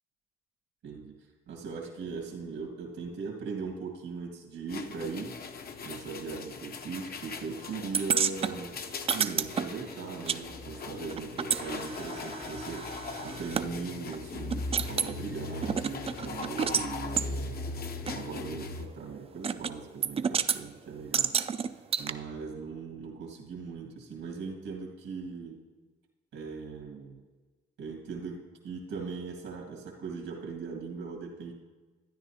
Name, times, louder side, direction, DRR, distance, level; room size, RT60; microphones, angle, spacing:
voice 1, 0.8-1.2 1.5-5.3 5.8-8.8 9.1-17.6 18.1-21.3 22.0-25.6 26.3-27.2 27.8-31.5, right 5 dB, 80° right, 0 dB, 1.9 m, -39 dB
sound 1, 4.7-18.9, left 4 dB, 50° left, 0.7 m, -40 dB
sound 2, 7.9-10.4 10.7-13.7 14.1-14.2 14.5-15.1 15.6-16.9 17.2-17.3 18.1-18.2 19.4-19.7 20.0-20.6 21.1-22.1, right 7 dB, 30° right, 0.3 m, -30 dB
12.5 x 9.7 x 2.8 m, 1.3 s
cardioid pair, 90°, 20 cm